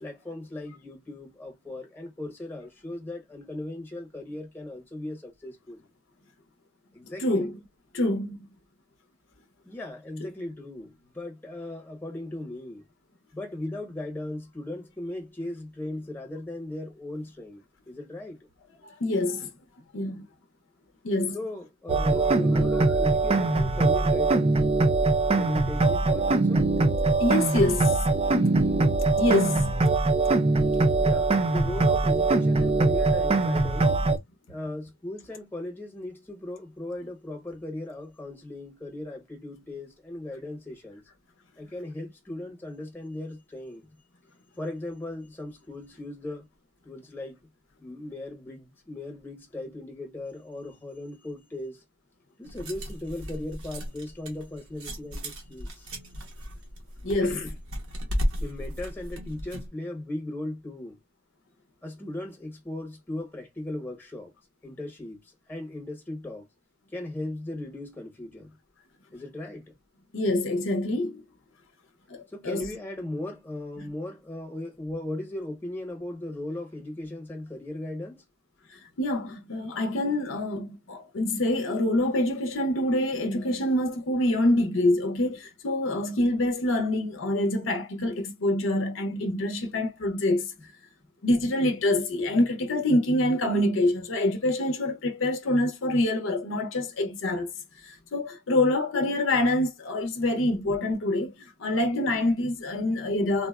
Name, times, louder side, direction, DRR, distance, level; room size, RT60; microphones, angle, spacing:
voice 1, 0.0-5.8 6.9-7.5 9.6-12.8 13.3-18.4 21.3-24.6 25.4-26.7 30.9-33.9 34.5-41.0 41.6-43.9 44.6-46.5 46.8-47.4 47.8-51.8 52.4-55.9 57.2-57.5 58.3-61.0 61.8-64.3 64.6-65.2 65.5-66.4 66.9-68.5 69.1-69.7 72.3-78.2, left 1 dB, 10° left, 1.0 m, -37 dB
voice 2, 7.2-7.6 7.9-8.4 18.8-19.5 19.9-20.3 21.0-21.4 27.2-28.0 29.2-29.9 57.0-57.4 70.1-71.2 72.1-72.7 73.8-73.9 78.7-90.5 91.2-97.5 97.8-103.5, left 1 dB, 65° left, 0.6 m, -26 dB
sound 1, 21.9-34.2, right 3 dB, 30° right, 0.4 m, -22 dB
sound 2, 52.4-59.7, equal, 90° right, 0.9 m, -35 dB
3.7 x 2.0 x 2.3 m
head